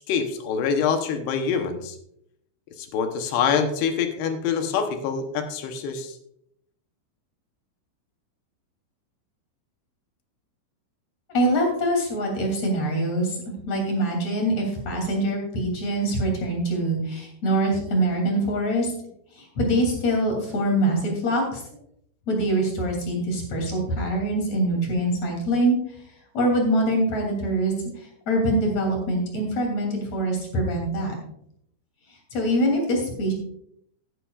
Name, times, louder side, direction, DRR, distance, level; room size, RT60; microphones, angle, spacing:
voice 1, 0.1-2.0 2.9-6.1, left 6 dB, 75° left, 6 dB, 2.6 m, -25 dB
voice 2, 11.3-13.4 13.7-18.9 19.3-21.6 22.3-25.8 26.3-31.1 32.3-33.3, right 1 dB, 40° left, 0 dB, 3.5 m, -24 dB
15.0 x 11.0 x 2.4 m, 0.72 s
omnidirectional pair, 5.6 m